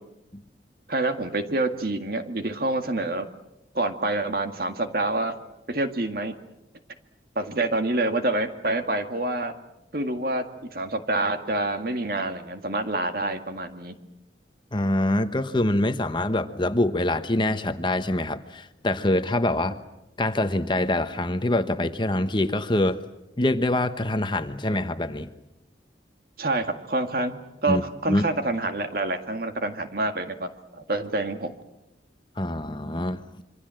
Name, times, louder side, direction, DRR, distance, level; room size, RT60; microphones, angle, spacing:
voice 1, 0.9-3.3 3.7-5.4 5.7-6.3 7.4-9.5 9.9-14.0 26.4-31.5, right 2 dB, 55° right, 7 dB, 2.0 m, -27 dB
voice 2, 14.7-19.8 20.2-23.0 23.4-25.3 27.7-27.8 28.1-28.2 32.4-33.2, left 1 dB, 25° left, 9 dB, 1.1 m, -25 dB
27.0 x 24.5 x 7.7 m, 0.90 s
head